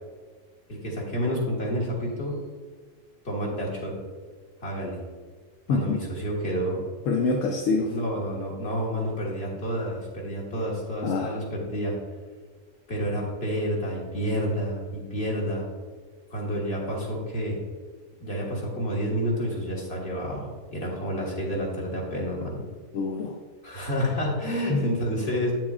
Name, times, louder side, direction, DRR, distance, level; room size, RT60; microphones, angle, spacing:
voice 1, 0.7-2.4 3.2-4.0 4.6-5.0 5.7-6.8 7.8-12.0 12.9-15.6 16.3-17.6 18.2-22.6 23.6-25.5, equal, 50° left, -3 dB, 1.9 m, -29 dB
voice 2, 5.7-6.0 7.1-7.9 11.0-11.4 22.9-23.4 24.7-24.9, left 3 dB, 75° left, 1 dB, 1.0 m, -25 dB
8.7 x 7.3 x 2.4 m, 1.5 s
omnidirectional pair, 1.3 m